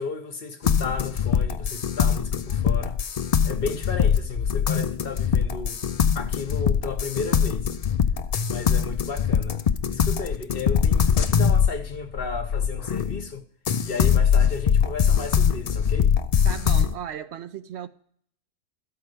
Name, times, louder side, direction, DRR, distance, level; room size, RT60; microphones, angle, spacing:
voice 1, 0.0-3.0 3.4-5.8 6.1-7.7 8.5-9.6 9.9-13.4 13.8-16.1, left 5 dB, 50° left, 1.1 m, -33 dB
sound 1, 0.6-13.2 13.7-16.9, left 7 dB, 70° left, 0.3 m, -22 dB
voice 2, 16.4-17.9, right 9 dB, 70° right, 0.8 m, -36 dB
14.0 x 4.8 x 6.7 m
omnidirectional pair, 1.3 m